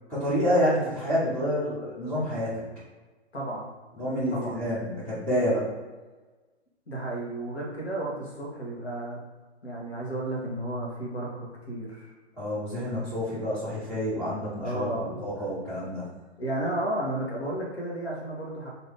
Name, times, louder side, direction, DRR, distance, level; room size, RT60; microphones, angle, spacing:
voice 1, 0.1-2.5 3.9-5.7 12.3-16.1, equal, 5° left, -13 dB, 0.5 m, -28 dB
voice 2, 3.3-3.7 4.3-4.6 6.9-9.2 9.6-12.1 14.6-15.2 16.4-18.7, right 1 dB, 70° left, -3 dB, 1.3 m, -33 dB
2.9 x 2.7 x 3.5 m, 1.3 s
figure-of-eight pair, 125°, 33 cm